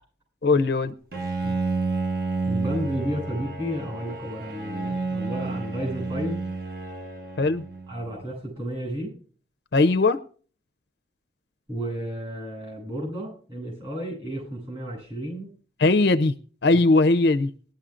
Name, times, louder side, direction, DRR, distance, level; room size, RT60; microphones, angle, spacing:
voice 1, 0.4-0.9 7.4-7.6 9.7-10.2 15.8-16.3 16.6-17.5, left 3 dB, 60° left, 10 dB, 0.5 m, -19 dB
Bowed string instrument, 1.1-8.2, right 3 dB, 50° right, 1.0 m, -30 dB
voice 2, 2.5-6.4 7.9-9.1 11.7-15.5, equal, 30° right, -2 dB, 7.8 m, -32 dB
19.5 x 11.5 x 2.5 m, 0.42 s
head